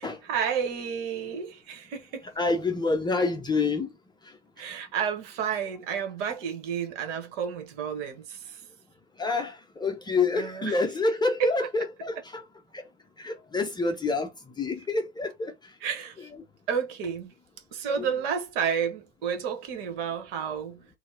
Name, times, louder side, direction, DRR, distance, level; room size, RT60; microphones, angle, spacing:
voice 1, 0.0-2.3 4.6-8.6 10.3-10.8 11.4-11.5 15.8-16.3 16.7-17.3 17.7-20.9, right 7 dB, 55° right, 1.3 m, -31 dB
voice 2, 2.4-3.9 9.2-12.4 12.7-12.8 13.2-15.5, left 3 dB, 10° left, 0.7 m, -27 dB
4.0 x 2.2 x 2.7 m
figure-of-eight pair, 85°, 35 cm